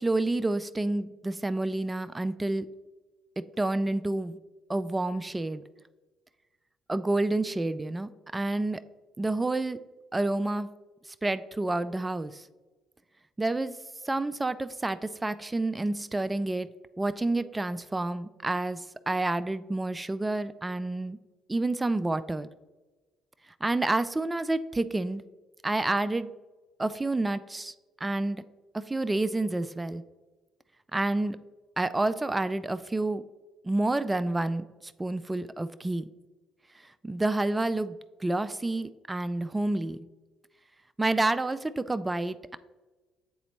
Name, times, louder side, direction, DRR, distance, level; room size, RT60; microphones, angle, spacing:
voice 1, 0.0-2.7 3.6-4.4 4.7-5.6 6.9-8.8 9.2-9.8 10.1-10.7 11.2-12.5 13.4-13.8 14.0-16.7 17.0-21.2 21.5-22.5 23.6-25.2 25.6-26.3 26.8-27.7 28.0-28.4 28.7-30.0 30.9-31.4 31.8-33.2 33.6-36.1 37.0-38.0 38.2-40.0 41.0-42.6, right 2 dB, 15° right, 13 dB, 0.3 m, -29 dB
8.0 x 3.9 x 3.1 m, 1.2 s
hypercardioid pair, 55°, 0 cm